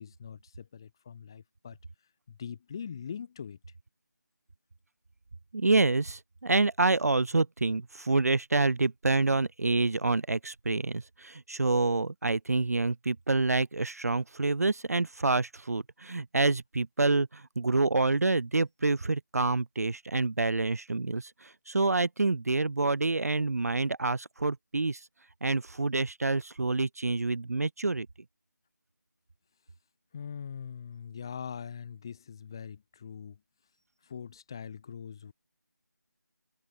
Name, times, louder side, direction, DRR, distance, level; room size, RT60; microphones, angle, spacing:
voice 1, 0.0-1.8 2.3-3.6 30.1-33.4 34.0-35.3, left 7 dB, 15° left, 0.6 m, -42 dB
voice 2, 5.5-25.0 25.4-28.1, right 3 dB, 55° right, 0.4 m, -27 dB
figure-of-eight pair, 160°, 10 cm